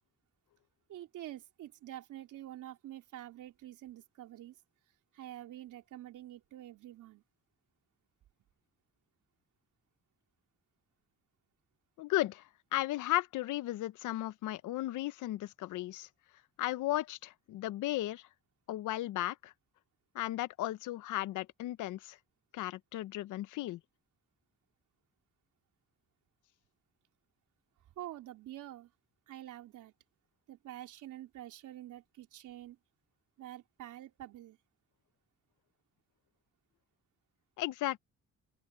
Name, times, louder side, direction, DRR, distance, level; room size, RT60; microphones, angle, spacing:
voice 1, 0.9-4.6 5.1-7.2 28.0-28.9 29.3-29.9 30.5-32.8 33.4-34.6, right 13 dB, 80° right, 3.7 m, -47 dB
voice 2, 12.0-12.4 12.7-16.1 16.6-18.2 18.7-19.5 20.1-22.2 22.5-23.8 37.6-38.0, left 16 dB, 85° left, 0.8 m, -35 dB
open air
cardioid pair, 90°, 30 cm